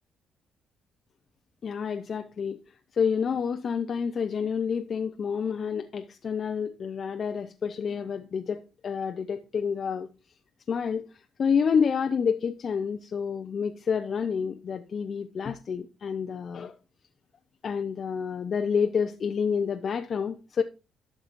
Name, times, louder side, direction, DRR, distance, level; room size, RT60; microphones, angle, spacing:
voice 1, 1.6-2.6 2.9-10.1 10.7-16.8 17.6-20.6, left 6 dB, 50° left, 0.6 m, -29 dB
11.5 x 6.0 x 2.5 m
cardioid pair, 90°, 0 cm